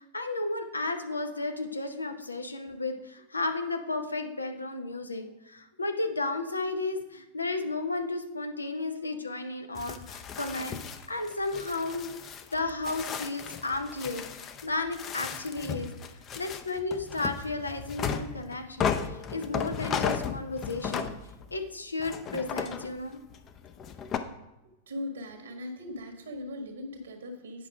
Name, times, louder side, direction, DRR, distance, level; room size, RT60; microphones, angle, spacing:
voice 1, 0.0-10.8 11.1-12.1 12.5-15.9 16.4-21.1 21.5-23.2, left 3 dB, 80° left, 6 dB, 0.8 m, -33 dB
sound 1, 9.7-21.6 22.0-24.2, left 7 dB, 30° left, 0.6 m, -35 dB
voice 2, 24.9-27.7, left 1 dB, 65° right, 5 dB, 1.5 m, -39 dB
8.4 x 5.6 x 4.8 m, 0.97 s
figure-of-eight pair, 90°, 0 cm